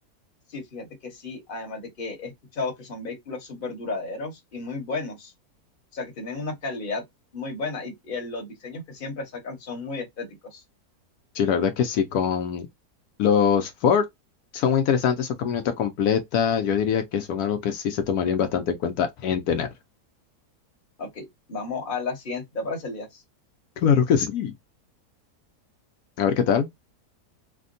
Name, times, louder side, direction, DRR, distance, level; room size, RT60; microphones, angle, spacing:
voice 1, 0.5-5.3 5.9-7.0 7.3-10.6 21.0-23.2, left 3 dB, 40° left, 1.0 m, -33 dB
voice 2, 11.3-12.7 13.2-14.0 14.5-19.7 23.8-24.5 26.2-26.7, left 7 dB, 70° left, 1.0 m, -23 dB
3.4 x 2.2 x 2.5 m
omnidirectional pair, 1.7 m